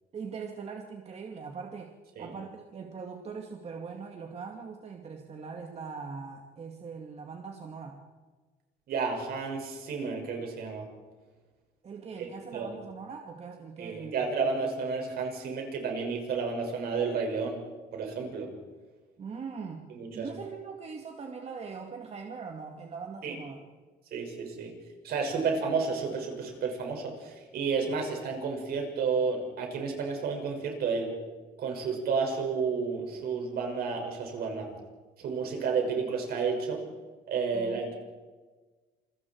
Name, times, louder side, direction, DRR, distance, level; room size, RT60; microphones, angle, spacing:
voice 1, 0.1-1.9 2.2-8.0 11.8-14.6 19.2-19.9 20.1-23.6 27.9-28.0 37.5-37.8, right 5 dB, 40° right, 3 dB, 2.2 m, -41 dB
voice 2, 8.9-10.9 12.5-12.7 13.8-17.6 17.9-18.5 19.9-20.4 23.2-23.4 24.1-24.7 25.0-31.2 31.6-34.7 35.2-36.8 37.3-37.9, right 5 dB, 65° right, 2 dB, 6.3 m, -31 dB
28.0 x 22.5 x 4.7 m, 1.3 s
cardioid pair, 110°, 17 cm